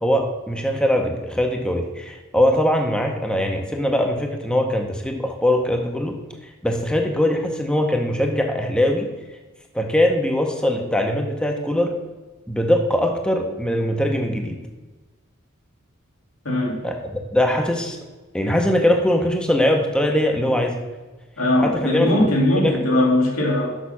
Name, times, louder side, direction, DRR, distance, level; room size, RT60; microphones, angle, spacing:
voice 1, 0.0-6.2 6.6-9.1 9.7-12.0 12.5-14.6 16.8-16.9 17.3-18.0 18.3-20.8 21.6-22.2 22.6-22.8, left 1 dB, 5° left, 3 dB, 0.7 m, -21 dB
voice 2, 16.4-16.8 21.4-23.8, left 1 dB, 85° left, -3 dB, 2.3 m, -20 dB
6.3 x 5.7 x 5.7 m, 1.2 s
head